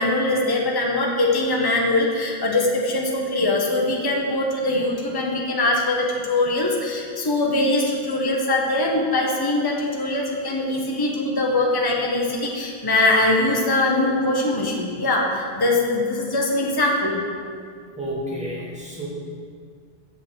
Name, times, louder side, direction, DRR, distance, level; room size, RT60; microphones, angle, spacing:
voice 1, 0.0-17.2, left 2 dB, 20° left, -1 dB, 1.0 m, -22 dB
voice 2, 18.0-19.1, equal, 5° right, -6 dB, 2.0 m, -30 dB
7.8 x 5.7 x 6.1 m, 2.1 s
omnidirectional pair, 1.2 m